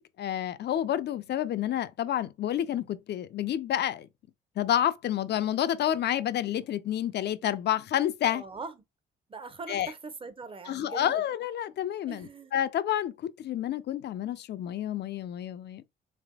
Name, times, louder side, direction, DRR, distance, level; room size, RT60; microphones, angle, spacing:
voice 1, 0.0-4.1 4.6-8.4 9.7-9.9 10.7-15.8, left 11 dB, 60° left, 0.5 m, -29 dB
voice 2, 8.3-8.8 9.3-11.2 12.1-12.5, right 4 dB, 25° right, 0.8 m, -42 dB
3.4 x 3.4 x 2.3 m
cardioid pair, 90°, 20 cm